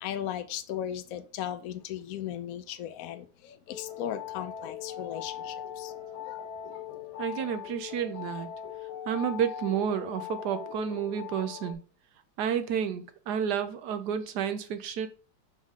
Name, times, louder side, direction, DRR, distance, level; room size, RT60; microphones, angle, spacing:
voice 1, 0.0-5.9 6.2-6.4 6.7-6.8, left 10 dB, 80° left, 0.7 m, -37 dB
sound 1, 3.7-11.7, left 9 dB, 55° left, 1.7 m, -40 dB
voice 2, 7.2-8.5 9.1-11.8 12.4-15.1, right 8 dB, 65° right, 1.1 m, -30 dB
5.4 x 3.6 x 4.9 m
omnidirectional pair, 2.2 m